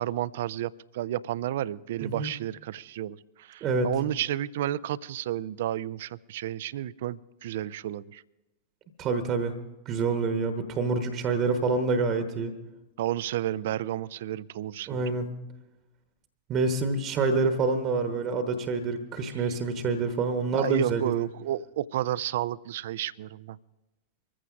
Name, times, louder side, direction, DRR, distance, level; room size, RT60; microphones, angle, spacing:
voice 1, 0.0-8.2 13.0-15.1 19.3-19.4 20.5-23.6, right 12 dB, 55° right, 20 dB, 0.4 m, -31 dB
voice 2, 3.6-3.9 9.0-9.5 9.9-12.5 14.9-15.3 16.5-21.3, right 4 dB, 35° right, 8 dB, 1.1 m, -27 dB
25.0 x 15.0 x 2.5 m, 1.0 s
figure-of-eight pair, 90°, 0 cm